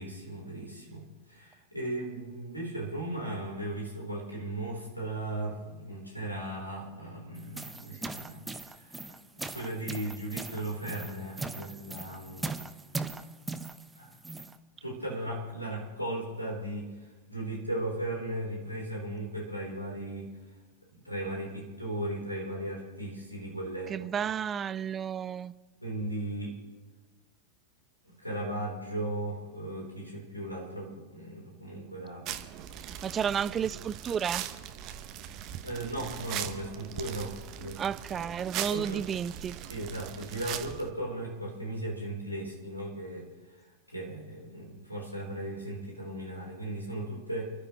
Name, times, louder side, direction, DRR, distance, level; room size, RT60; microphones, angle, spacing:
voice 1, 0.0-12.6 14.0-14.2 14.8-20.3 20.9-24.1 25.8-26.6 28.1-32.3 35.6-37.8 38.1-38.3 38.7-39.1 39.7-43.3 43.9-47.5, right 1 dB, 90° left, 3.9 m, -37 dB
sound 1, 7.4-14.6, right 3 dB, 10° right, 0.9 m, -40 dB
voice 2, 23.9-25.5 32.8-34.4 37.8-39.6, right 8 dB, 25° right, 0.4 m, -32 dB
sound 2, 32.3-40.9, right 11 dB, 40° right, 1.1 m, -40 dB
29.5 x 12.0 x 3.1 m
figure-of-eight pair, 90°, 0 cm